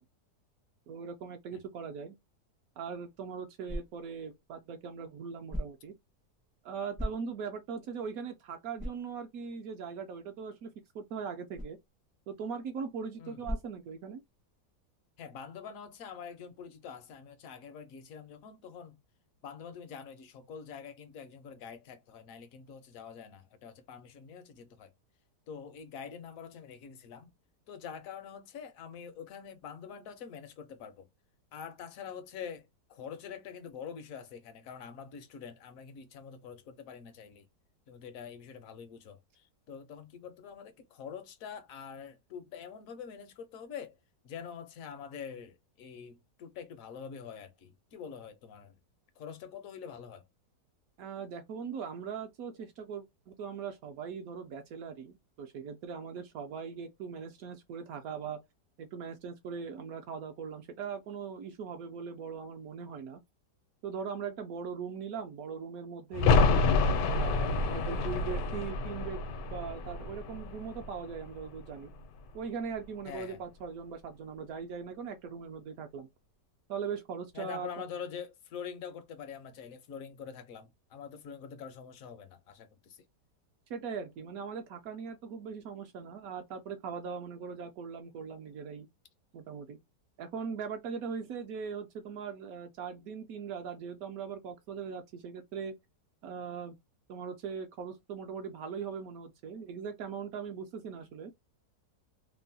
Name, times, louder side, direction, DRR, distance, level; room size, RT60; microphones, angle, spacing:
voice 1, 0.9-2.2 2.8-5.9 6.6-11.8 12.3-14.2 51.0-58.4 58.8-63.2 63.8-66.7 67.0-69.2 69.5-71.9 72.3-76.1 76.7-77.8 83.7-88.9 89.3-89.8 90.2-95.7 96.2-96.7 97.1-101.3, right 6 dB, 70° right, 0.9 m, -40 dB
sound 1, 2.9-14.5, equal, 10° right, 0.4 m, -45 dB
voice 2, 15.2-19.0 19.4-24.9 25.5-27.3 27.7-31.1 31.5-37.5 37.9-44.0 44.2-48.8 49.2-50.2 73.1-73.4 77.3-83.0, left 7 dB, 70° left, 0.9 m, -45 dB
sound 2, 66.1-71.7 72.0-72.1, left 3 dB, 85° left, 1.2 m, -28 dB
3.0 x 2.1 x 2.6 m
omnidirectional pair, 1.8 m